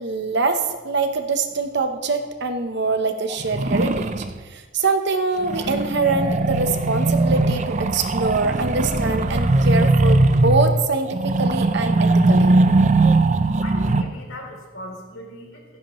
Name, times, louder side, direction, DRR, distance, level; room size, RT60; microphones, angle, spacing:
voice 1, 0.0-4.2 4.5-12.6, right 3 dB, 55° right, 7 dB, 1.0 m, -24 dB
sound 1, 3.3-4.4 5.4-14.0, right 2 dB, 35° right, 0.5 m, -19 dB
voice 2, 13.6-15.6, left 1 dB, 75° left, 0 dB, 3.2 m, -38 dB
15.5 x 15.0 x 3.1 m, 1.3 s
head